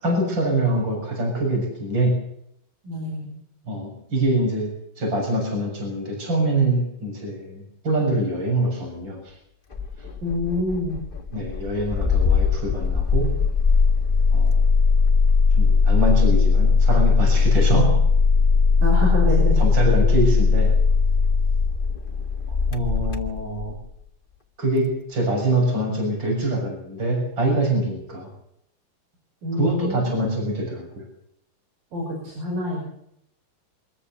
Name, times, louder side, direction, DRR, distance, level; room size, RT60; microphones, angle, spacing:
voice 1, 0.0-2.2 3.7-9.2 11.3-13.3 14.3-14.6 15.5-18.0 19.6-20.7 22.7-23.8 24.6-28.3 29.6-31.1, right 1 dB, 30° right, 1 dB, 7.6 m, -24 dB
voice 2, 2.8-3.3 10.2-11.0 18.8-19.6 29.4-30.1 31.9-32.8, left 1 dB, 75° right, -1 dB, 7.7 m, -26 dB
Engine starting, 9.7-23.8, left 5 dB, 85° left, 0.4 m, -19 dB
26.0 x 14.0 x 8.2 m, 0.72 s
omnidirectional pair, 4.1 m